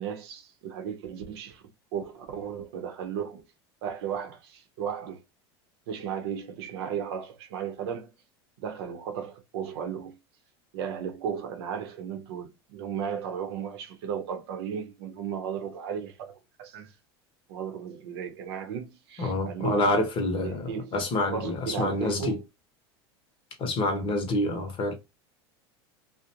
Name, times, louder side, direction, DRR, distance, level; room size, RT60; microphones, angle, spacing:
voice 1, 0.0-1.6 1.9-3.4 3.8-5.2 5.9-8.1 8.6-10.2 10.7-16.9 17.5-19.9 20.2-20.9 21.3-22.4, right 8 dB, 70° right, 0.7 m, -35 dB
voice 2, 19.2-22.4 23.6-24.9, left 2 dB, 40° left, 0.8 m, -27 dB
2.5 x 2.0 x 2.8 m
hypercardioid pair, 95°, 14 cm